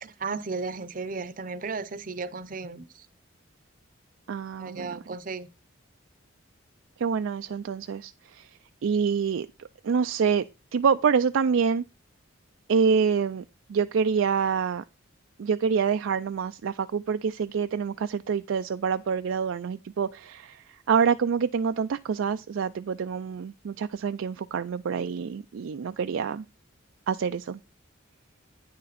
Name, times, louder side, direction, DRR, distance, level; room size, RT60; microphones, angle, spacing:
voice 1, 0.0-3.1 4.6-5.5, right 4 dB, 40° right, 0.7 m, -35 dB
voice 2, 4.3-5.0 7.0-8.5 8.8-10.4 10.7-11.8 12.7-13.4 13.7-14.8 15.4-26.4 27.1-27.6, right 6 dB, 75° right, 0.4 m, -26 dB
9.4 x 6.6 x 4.1 m
head